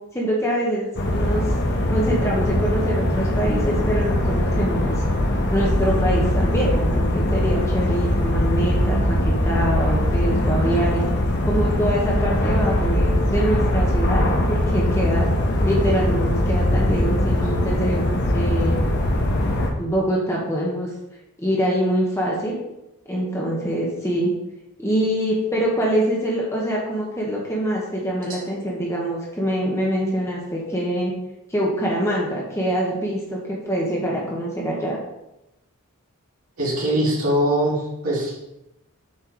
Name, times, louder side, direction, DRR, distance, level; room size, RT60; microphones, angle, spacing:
voice 1, 0.1-5.0 5.5-11.0 11.4-15.3 15.6-18.0 18.3-19.0 19.8-20.9 21.4-22.6 23.1-24.3 24.8-31.1 31.5-35.0, equal, 10° left, -4 dB, 1.2 m, -24 dB
sound 1, 1.0-19.7, left 1 dB, 50° left, 1.1 m, -21 dB
voice 2, 36.6-38.3, right 1 dB, 70° right, -6 dB, 2.2 m, -22 dB
7.4 x 4.4 x 4.6 m, 0.91 s
head